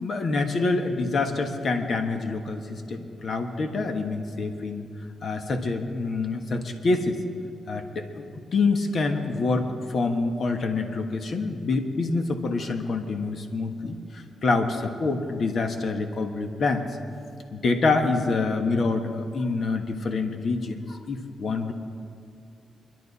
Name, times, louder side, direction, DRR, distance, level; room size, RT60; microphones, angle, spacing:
voice 1, 0.0-4.9 5.2-7.2 7.7-8.2 8.5-16.9 17.6-21.7, left 3 dB, 55° left, 5 dB, 1.3 m, -26 dB
24.0 x 11.5 x 4.2 m, 2.5 s
cardioid pair, 95°, 0 cm